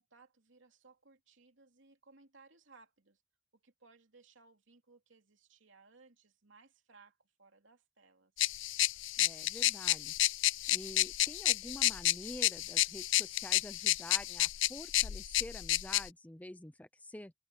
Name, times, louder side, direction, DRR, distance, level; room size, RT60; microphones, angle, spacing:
voice 1, 0.0-3.2 3.5-8.3, right 4 dB, 70° right, 3.0 m, -62 dB
sound 1, 8.4-16.1, left 16 dB, 65° left, 0.5 m, -31 dB
voice 2, 9.2-10.1 10.7-17.3, left 1 dB, 5° left, 0.5 m, -48 dB
head